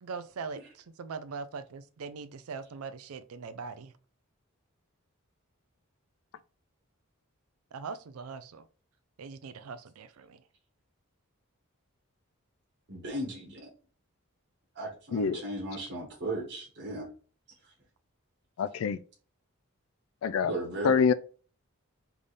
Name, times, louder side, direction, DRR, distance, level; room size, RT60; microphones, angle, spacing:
voice 1, 0.0-3.9 7.7-8.7 9.2-10.4, right 5 dB, 80° right, 0.4 m, -41 dB
voice 2, 12.9-13.7 14.7-17.1 20.4-21.0, right 1 dB, 55° right, 1.2 m, -36 dB
voice 3, 15.1-15.4 18.6-19.0 20.2-20.5 20.8-21.1, left 6 dB, 70° left, 0.3 m, -25 dB
3.5 x 3.4 x 3.9 m
head